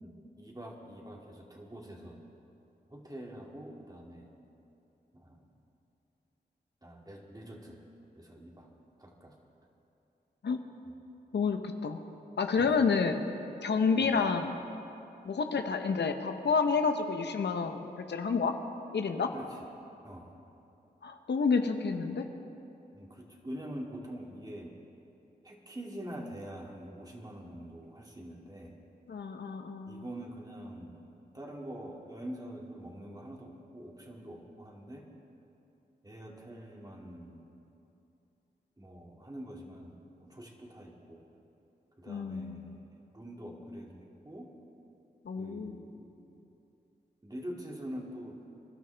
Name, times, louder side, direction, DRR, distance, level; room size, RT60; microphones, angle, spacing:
voice 1, 0.0-2.2 2.9-4.3 5.1-5.4 6.8-7.8 8.1-8.7 9.0-9.4 12.6-12.7 14.0-14.1 19.3-19.5 20.0-20.3 22.9-24.7 25.4-28.8 29.9-31.0 31.3-35.0 36.0-37.5 38.8-41.2 42.0-42.9 43.1-44.5 45.4-46.4 47.2-48.4, equal, 20° right, -1 dB, 2.4 m, -45 dB
voice 2, 11.3-12.0 12.4-13.2 13.6-14.5 15.2-18.5 18.9-19.3 21.0-22.3 29.1-30.1 42.1-42.8 45.2-45.8, left 5 dB, 80° left, 6 dB, 0.9 m, -29 dB
26.0 x 12.0 x 3.4 m, 2.8 s
cardioid pair, 55°, 18 cm